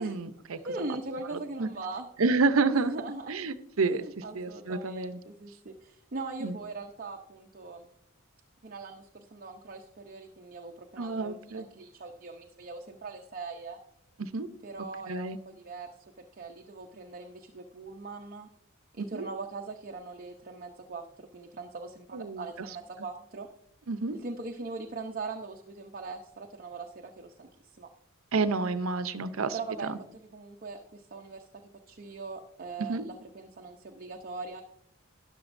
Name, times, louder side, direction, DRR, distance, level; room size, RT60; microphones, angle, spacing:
voice 1, 0.0-0.6 1.6-1.7 2.2-2.9 3.3-5.2 6.4-6.6 11.0-11.7 14.2-14.5 15.1-15.4 19.0-19.3 22.1-22.4 23.9-24.2 28.3-29.6 29.8-30.0 32.8-33.0, right 3 dB, 80° right, 12 dB, 0.7 m, -29 dB
voice 2, 0.6-2.1 2.7-3.3 3.8-7.9 8.6-13.8 14.6-15.9 16.2-18.5 18.9-23.5 24.1-27.9 29.5-29.9 30.3-31.5 31.9-34.6, right 3 dB, 45° right, 2 dB, 0.7 m, -41 dB
13.0 x 10.5 x 2.6 m, 0.71 s
head